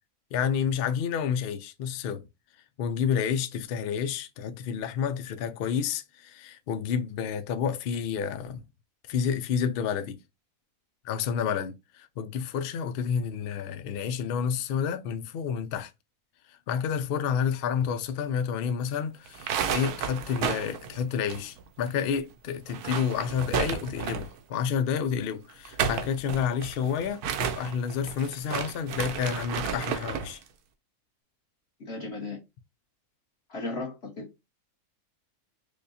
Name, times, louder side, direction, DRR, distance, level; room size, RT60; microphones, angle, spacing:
voice 1, 0.3-2.2 2.8-8.6 9.1-10.2 11.0-15.9 16.5-30.4, left 7 dB, 90° left, 0.5 m, -30 dB
sound 1, 19.3-21.9 22.1-22.2 22.6-24.4 25.5-30.3, right 7 dB, 85° right, 1.2 m, -32 dB
voice 2, 31.8-32.4 33.5-34.3, left 2 dB, 45° left, 1.4 m, -35 dB
5.0 x 2.2 x 2.6 m
omnidirectional pair, 1.6 m